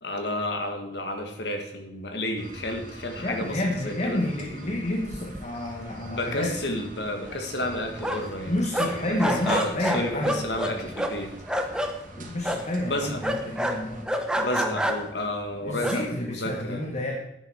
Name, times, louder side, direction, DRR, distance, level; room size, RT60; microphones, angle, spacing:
voice 1, 0.0-4.2 6.1-8.9 9.2-11.3 12.9-13.2 14.4-16.8, left 1 dB, 70° left, 5 dB, 2.0 m, -31 dB
sound 1, 2.4-14.1, right 1 dB, 50° right, 2.0 m, -45 dB
voice 2, 3.2-6.8 8.5-10.4 12.3-14.1 15.6-17.2, left 1 dB, 40° left, 1 dB, 1.5 m, -30 dB
sound 2, 4.8-4.9 5.1-5.8 6.1-6.2 6.5-8.4 8.7-11.9 12.4-12.7 13.2-15.2 15.7-16.0, equal, 5° right, 1.0 m, -28 dB
11.0 x 9.3 x 4.8 m, 0.81 s
head